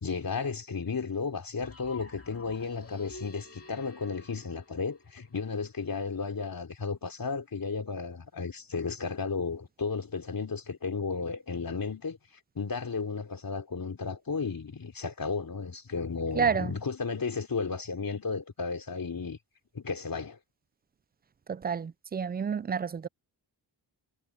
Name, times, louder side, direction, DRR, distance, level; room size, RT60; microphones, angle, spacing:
voice 1, 0.0-12.2 12.6-19.4 19.7-20.4, left 4 dB, 50° left, 3.7 m, -34 dB
sound 1, 1.6-5.6, left 3 dB, 35° left, 2.6 m, -49 dB
voice 2, 16.4-16.7 21.5-23.1, right 6 dB, 25° right, 0.3 m, -29 dB
cardioid pair, 60°, 43 cm